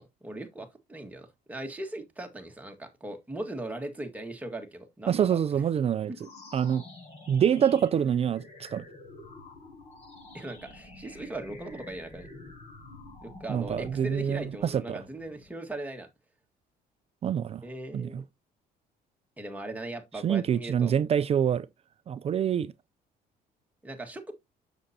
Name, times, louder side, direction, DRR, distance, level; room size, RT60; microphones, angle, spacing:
voice 1, 0.0-5.4 10.3-12.3 13.2-16.1 17.6-18.2 19.4-20.9 23.8-24.3, right 1 dB, 10° right, 1.8 m, -39 dB
voice 2, 5.1-6.1 6.5-6.8 7.3-8.8 13.5-15.0 17.2-17.6 17.9-18.2 20.2-21.7 22.1-22.7, right 8 dB, 35° right, 0.4 m, -26 dB
sound 1, 6.1-15.6, left 2 dB, 40° left, 6.1 m, -48 dB
7.8 x 7.1 x 2.8 m
cardioid pair, 110°, 17 cm